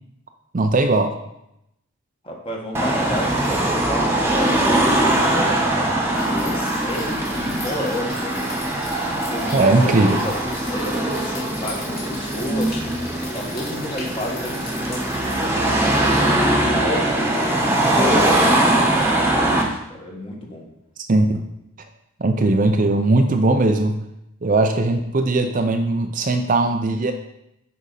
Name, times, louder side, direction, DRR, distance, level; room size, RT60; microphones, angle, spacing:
voice 1, 0.5-1.1 9.1-9.2 9.5-10.2 21.1-21.4 22.2-24.0 24.4-27.1, right 2 dB, 40° right, 5 dB, 0.5 m, -19 dB
voice 2, 2.2-8.9 9.3-13.0 13.3-16.0 16.6-20.6, left 1 dB, 25° left, -1 dB, 1.6 m, -31 dB
Car passing by / Traffic noise roadway noise / Engine, 2.7-19.6, right 1 dB, 10° right, 1.2 m, -21 dB
sound 1, 6.1-15.5, left 3 dB, 45° left, 3.0 m, -38 dB
9.8 x 5.2 x 4.2 m, 0.83 s
head